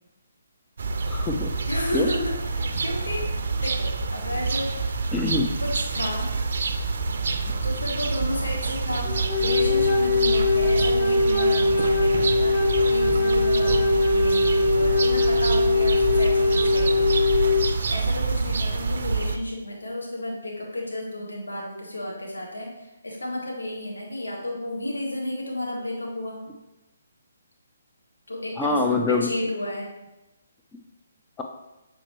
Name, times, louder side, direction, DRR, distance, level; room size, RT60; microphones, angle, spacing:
sound 1, 0.8-19.4, right 4 dB, 60° right, 0.5 m, -27 dB
voice 1, 1.1-1.5 1.9-2.1 5.1-5.5 28.6-29.3 31.4-31.5, left 3 dB, 10° left, 1 dB, 0.5 m, -24 dB
voice 2, 1.7-3.3 3.6-4.7 5.6-6.3 7.6-9.1 9.4-17.1 17.9-26.4 28.3-29.9, left 1 dB, 75° left, -2 dB, 1.7 m, -32 dB
Wind instrument woodwind instrument, 9.0-17.7, left 3 dB, 40° left, 1.8 m, -21 dB
7.1 x 4.3 x 3.1 m, 0.98 s
figure-of-eight pair, 140°, 0 cm